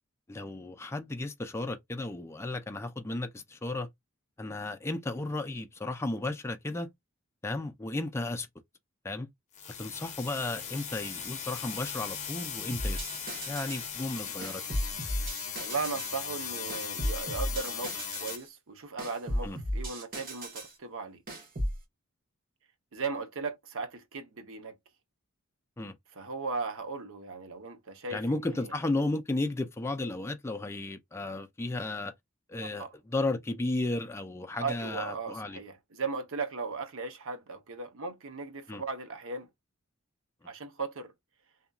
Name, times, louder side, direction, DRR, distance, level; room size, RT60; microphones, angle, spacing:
voice 1, 0.3-3.9 4.4-6.9 7.4-8.5 9.0-9.3 9.8-13.0 13.5-14.6 19.4-19.6 25.8-25.9 28.1-32.1 32.5-35.6 38.7-38.8, left 2 dB, 10° left, 0.4 m, -34 dB
sound 1, 9.5-18.4, left 7 dB, 35° left, 0.8 m, -38 dB
sound 2, 12.7-13.9 14.4-16.2 16.7-18.5 19.0-20.8 21.3-21.8, equal, 45° right, 1.1 m, -35 dB
voice 2, 15.6-21.2 22.9-24.8 26.1-28.7 32.8-32.9 34.6-39.5 40.5-41.1, right 4 dB, 65° right, 0.8 m, -37 dB
2.8 x 2.5 x 2.3 m
head